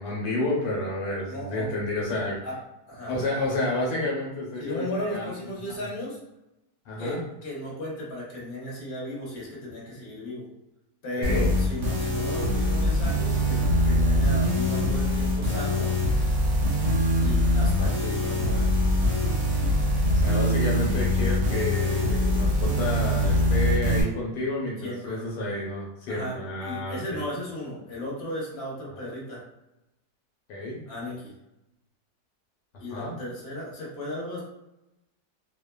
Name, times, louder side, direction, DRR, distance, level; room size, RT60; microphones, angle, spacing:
voice 1, 0.0-2.4 3.1-5.3 6.9-7.2 11.2-11.5 20.0-27.2 30.5-30.8 32.9-33.1, left 2 dB, 75° left, -4 dB, 1.2 m, -30 dB
voice 2, 1.2-1.7 2.4-2.5 2.9-3.1 4.6-6.2 7.0-10.5 11.0-15.9 17.2-18.8 24.8-25.2 26.1-26.4 26.6-29.4 30.9-31.3 32.8-34.4, left 1 dB, 40° left, -5 dB, 1.0 m, -35 dB
sound 1, 11.2-24.0, left 1 dB, 65° right, 0.8 m, -23 dB
2.8 x 2.1 x 2.2 m, 0.91 s
omnidirectional pair, 1.8 m